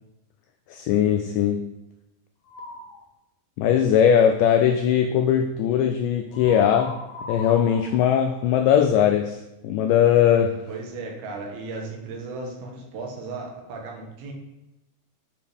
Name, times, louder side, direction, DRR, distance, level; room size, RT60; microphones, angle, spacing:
voice 1, 0.7-1.6 3.6-10.6, left 9 dB, 90° left, 5 dB, 1.9 m, -20 dB
sound 1, 2.4-3.0 6.3-9.1, left 3 dB, 70° left, 2.4 m, -39 dB
voice 2, 10.7-14.3, right 3 dB, 80° right, 0 dB, 3.2 m, -35 dB
9.3 x 4.8 x 3.5 m, 0.93 s
omnidirectional pair, 4.3 m